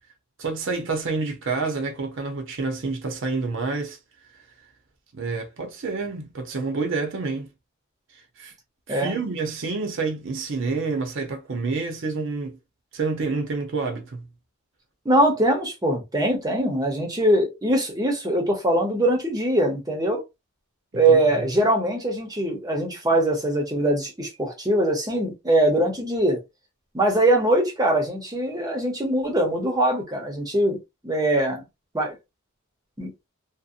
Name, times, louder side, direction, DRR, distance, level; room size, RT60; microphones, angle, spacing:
voice 1, 0.4-4.0 5.1-7.5 8.1-8.5 8.9-12.6 12.9-14.3 20.9-21.2, right 4 dB, 60° right, 0.6 m, -28 dB
voice 2, 15.1-20.2 20.9-26.4 26.9-30.8 31.0-31.6 31.9-32.2 33.0-33.1, right 1 dB, 15° right, 0.6 m, -22 dB
2.7 x 2.0 x 2.4 m
head